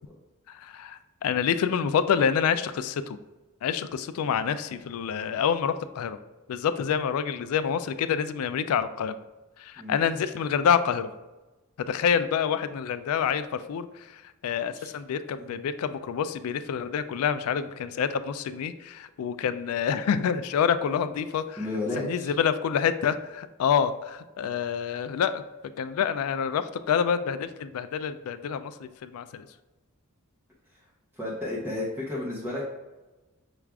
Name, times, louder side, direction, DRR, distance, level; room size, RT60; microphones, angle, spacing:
voice 1, 0.5-3.2 3.6-6.2 6.5-9.1 9.6-11.1 11.8-13.9 14.4-21.7 21.9-25.4 25.8-29.5, left 7 dB, 85° left, 12 dB, 0.3 m, -27 dB
voice 2, 21.6-22.3 30.7-30.8 31.1-32.6, left 2 dB, 10° right, -6 dB, 0.7 m, -33 dB
5.9 x 2.4 x 3.4 m, 1.1 s
head